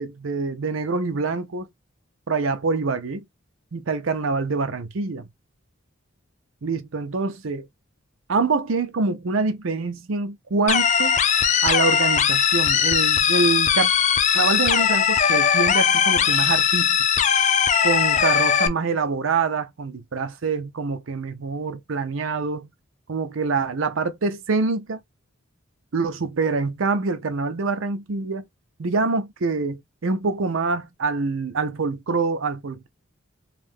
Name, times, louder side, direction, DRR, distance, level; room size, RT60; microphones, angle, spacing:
voice 1, 0.0-1.7 2.3-3.2 3.7-5.3 6.6-7.7 8.3-11.2 11.6-13.9 14.3-17.0 17.8-22.7 23.1-25.0 25.9-28.4 28.8-32.9, right 4 dB, 80° right, 0.6 m, -25 dB
sound 1, 10.7-18.7, left 7 dB, 35° left, 0.4 m, -19 dB
2.7 x 2.5 x 3.6 m
head